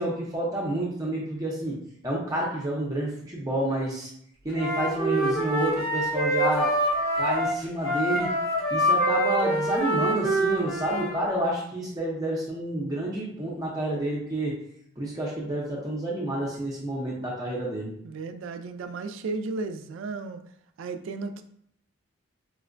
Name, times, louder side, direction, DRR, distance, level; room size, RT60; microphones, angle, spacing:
voice 1, 0.0-1.8 2.0-4.1 4.4-6.7 7.1-8.3 8.7-14.5 15.0-17.9, right 1 dB, 20° right, -4 dB, 0.5 m, -29 dB
Wind instrument woodwind instrument, 4.5-11.1, equal, 85° left, 1.1 m, -25 dB
voice 2, 18.0-20.4 20.8-21.4, right 3 dB, 75° right, 9 dB, 0.3 m, -34 dB
4.4 x 2.1 x 2.4 m, 0.70 s
head